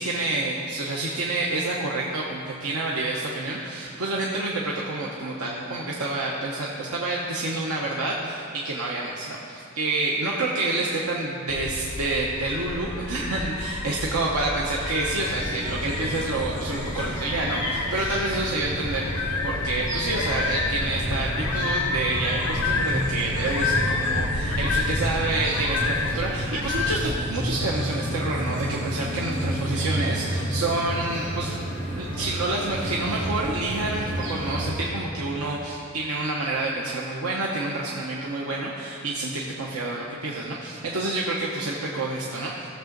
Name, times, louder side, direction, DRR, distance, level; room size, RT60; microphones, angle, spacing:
voice 1, 0.0-42.7, right 2 dB, 90° right, -3 dB, 1.0 m, -28 dB
sound 1, 11.5-27.1, left 3 dB, 75° left, 0.8 m, -30 dB
sound 2, 15.0-34.7, equal, 35° right, 2.9 m, -31 dB
16.5 x 6.9 x 3.9 m, 2.6 s
head